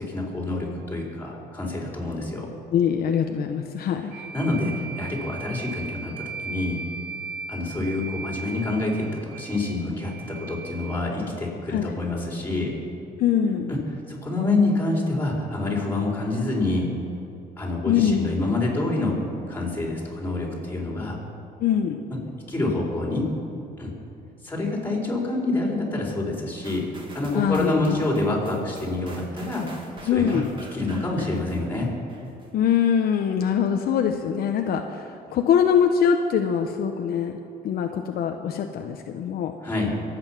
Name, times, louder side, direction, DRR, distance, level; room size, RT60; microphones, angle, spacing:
voice 1, 0.0-2.5 4.3-6.8 7.5-12.8 13.7-13.8 14.1-16.9 17.6-21.2 22.1-22.2 22.5-23.3 23.8-23.9 24.4-26.8 27.1-29.7 30.0-30.4 30.7-31.9 39.6-39.9, left 2 dB, 10° left, -2 dB, 4.6 m, -27 dB
voice 2, 2.7-4.3 11.7-12.0 13.2-13.7 17.9-18.3 21.6-22.0 27.3-28.0 30.1-30.5 32.5-37.4 37.6-39.5, left 8 dB, 65° left, 4 dB, 0.9 m, -23 dB
sound 1, 4.1-11.0, right 5 dB, 85° right, 2.1 m, -38 dB
sound 2, 26.6-32.5 33.0-33.1, right 2 dB, 30° right, 2.6 m, -45 dB
23.5 x 8.9 x 6.0 m, 2.7 s
cardioid pair, 110°, 17 cm